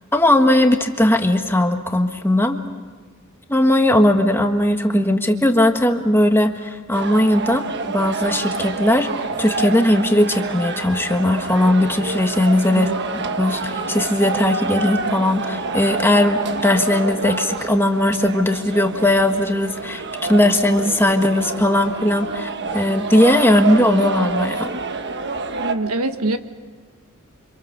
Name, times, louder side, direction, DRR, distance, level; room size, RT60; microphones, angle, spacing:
voice 1, 0.1-2.6 3.5-9.1 9.4-12.9 13.4-20.0 20.3-24.7, left 1 dB, 10° left, 5 dB, 1.5 m, -18 dB
sound 1, 6.9-25.8, right 4 dB, 55° right, 1.3 m, -27 dB
voice 2, 12.7-13.0 25.6-26.4, right 2 dB, 80° right, 8 dB, 1.5 m, -24 dB
29.5 x 26.0 x 6.7 m, 1.5 s
head